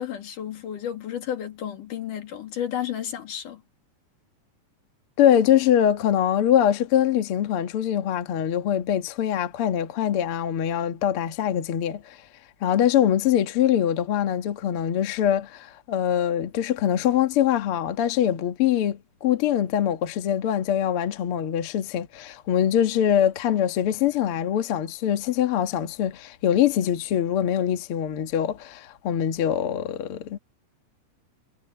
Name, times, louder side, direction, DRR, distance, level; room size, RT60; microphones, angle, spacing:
voice 1, 0.0-3.6, left 10 dB, 80° left, 3.6 m, -32 dB
voice 2, 5.2-12.2 12.6-30.4, left 10 dB, 55° left, 1.9 m, -23 dB
omnidirectional pair, 3.7 m